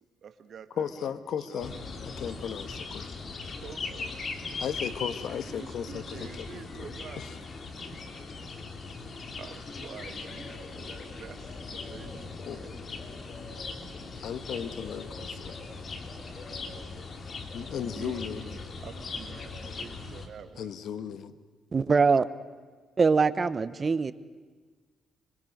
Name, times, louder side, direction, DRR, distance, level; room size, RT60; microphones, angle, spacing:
voice 1, 0.2-1.1 1.5-1.8 3.6-4.1 4.7-4.8 5.4-7.4 9.4-13.2 18.0-18.5 18.8-20.7, right 7 dB, 60° right, 9 dB, 1.9 m, -47 dB
voice 2, 0.8-1.7 2.0-3.1 4.6-7.4 12.4-13.3 14.2-15.6 17.5-18.6 20.6-21.4, left 8 dB, 70° left, 12 dB, 1.3 m, -36 dB
sound 1, 1.6-20.3, left 3 dB, 45° left, 2.8 m, -40 dB
voice 3, 21.7-22.3 23.0-24.1, right 4 dB, 35° right, 14 dB, 1.0 m, -23 dB
25.0 x 24.5 x 6.7 m, 1.4 s
cardioid pair, 90°, 0 cm